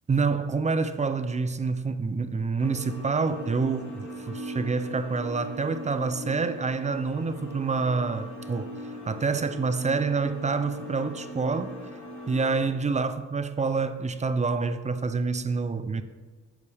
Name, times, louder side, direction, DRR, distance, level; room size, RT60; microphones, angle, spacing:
voice 1, 0.1-8.7 9.0-11.7 12.3-16.0, right 4 dB, 25° right, 0.6 m, -27 dB
sound 1, 2.6-12.7, equal, 45° left, 3.1 m, -39 dB
11.0 x 8.3 x 3.5 m
cardioid pair, 90°, 30 cm